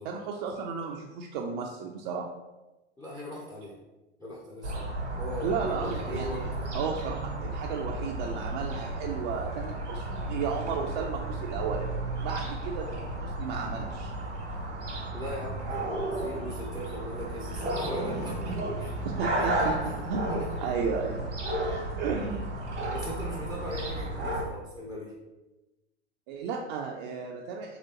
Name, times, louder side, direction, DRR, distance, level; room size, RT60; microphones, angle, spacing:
voice 1, 0.0-2.3 5.4-6.5 6.7-11.9 12.2-14.1 19.0-19.5 20.1-21.2 22.0-22.6 26.3-27.8, right 5 dB, 45° right, 0 dB, 0.4 m, -34 dB
voice 2, 3.0-3.8 4.2-6.8 15.1-18.9 19.4-20.9 22.3-22.4 22.9-25.2, equal, 10° left, -4 dB, 0.5 m, -39 dB
sound 1, 4.6-24.4, right 1 dB, 85° right, 1.1 m, -33 dB
4.0 x 3.0 x 2.8 m, 1.1 s
hypercardioid pair, 95°, 34 cm